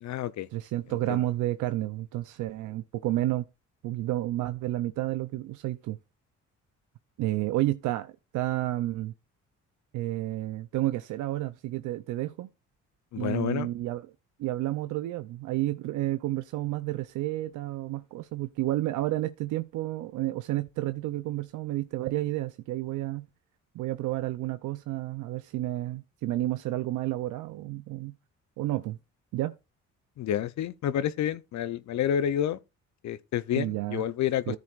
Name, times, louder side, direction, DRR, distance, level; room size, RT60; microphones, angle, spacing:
voice 1, 0.0-0.5 1.1-1.2 13.1-13.7 30.2-32.6 33.0-34.6, left 10 dB, 65° left, 0.6 m, -29 dB
voice 2, 0.5-3.5 3.8-6.0 7.2-9.1 9.9-12.5 13.1-14.1 14.4-23.3 23.7-28.2 28.6-29.0 29.3-29.5 33.6-34.0 34.5-34.6, right 16 dB, 85° right, 0.6 m, -31 dB
14.0 x 7.3 x 2.5 m
cardioid pair, 90°, 30 cm